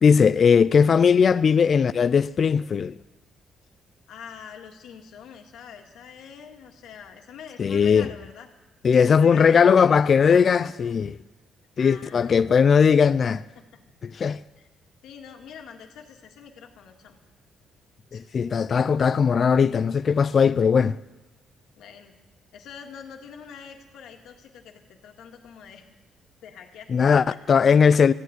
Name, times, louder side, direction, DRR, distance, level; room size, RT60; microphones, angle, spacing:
voice 1, 0.0-3.0 7.6-8.1 8.8-11.1 11.8-13.4 14.0-14.4 18.1-21.0 26.9-28.1, left 6 dB, 50° left, 0.4 m, -19 dB
voice 2, 4.1-8.5 9.1-10.0 10.3-11.0 11.8-12.5 13.6-13.7 14.6-14.7 15.0-17.2 18.1-18.3 21.8-22.1 22.5-25.8 26.4-27.4, left 7 dB, 85° left, 2.0 m, -44 dB
15.0 x 9.2 x 9.5 m
cardioid pair, 90°, 0 cm